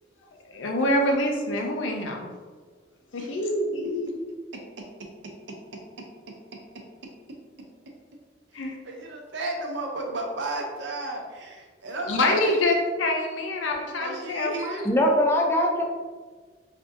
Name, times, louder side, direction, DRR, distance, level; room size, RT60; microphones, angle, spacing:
voice 1, 0.5-2.3 3.1-4.3 8.5-8.7 12.1-14.8, left 1 dB, 90° left, 2 dB, 0.5 m, -26 dB
voice 2, 4.5-4.8 5.5-6.0 6.7-6.8 8.5-12.6 14.0-14.9, right 2 dB, 70° right, 2 dB, 0.6 m, -34 dB
voice 3, 14.9-15.8, left 1 dB, 15° left, 0 dB, 0.4 m, -21 dB
3.5 x 2.6 x 2.5 m, 1.4 s
head